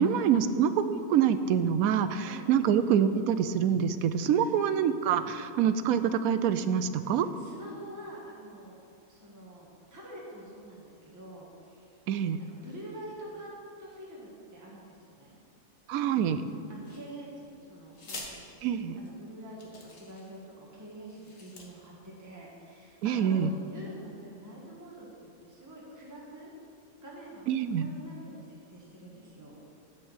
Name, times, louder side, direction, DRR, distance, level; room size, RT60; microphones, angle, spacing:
voice 1, 0.0-7.3 12.1-12.4 15.9-16.4 18.6-19.0 23.0-23.5 27.5-27.9, right 8 dB, 80° right, 11 dB, 1.0 m, -26 dB
voice 2, 7.0-8.8 9.1-11.9 12.4-13.5 13.8-15.4 16.7-26.5 27.0-27.4 27.7-29.6, right 1 dB, 15° right, -5 dB, 1.5 m, -47 dB
sound 1, 16.8-17.4 17.9-18.3 19.1-19.2 19.6-20.4 21.0-21.7, left 3 dB, 65° left, 1.8 m, -45 dB
8.1 x 7.6 x 7.2 m, 2.5 s
omnidirectional pair, 1.5 m